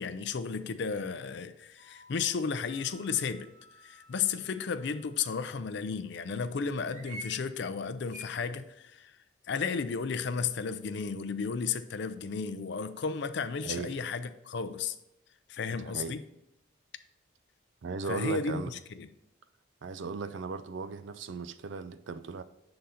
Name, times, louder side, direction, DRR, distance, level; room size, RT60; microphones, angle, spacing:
voice 1, 0.0-3.5 3.8-9.2 9.5-15.0 15.5-16.2 18.1-19.1, left 5 dB, 55° left, 0.4 m, -33 dB
sound 1, 1.8-5.6 6.9-7.4 8.1-8.3, right 1 dB, 40° right, 1.0 m, -50 dB
voice 2, 13.6-14.0 15.8-16.2 17.8-18.7 19.8-22.4, right 4 dB, 65° right, 0.4 m, -37 dB
6.8 x 3.9 x 4.2 m
head